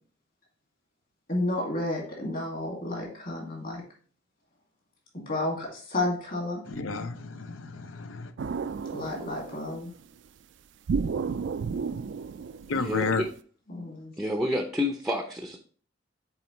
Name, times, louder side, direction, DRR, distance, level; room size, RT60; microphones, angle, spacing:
voice 1, 1.3-3.8 5.1-6.6 8.9-9.9 13.7-14.1, left 2 dB, 45° left, 2.3 m, -31 dB
voice 2, 6.7-8.3 12.7-13.2, left 4 dB, 85° left, 0.6 m, -31 dB
sound 1, 8.4-9.9 10.9-13.3, right 5 dB, 60° right, 0.3 m, -32 dB
voice 3, 12.7-13.3 14.2-15.6, left 1 dB, ahead, 0.6 m, -29 dB
6.9 x 4.3 x 3.1 m
head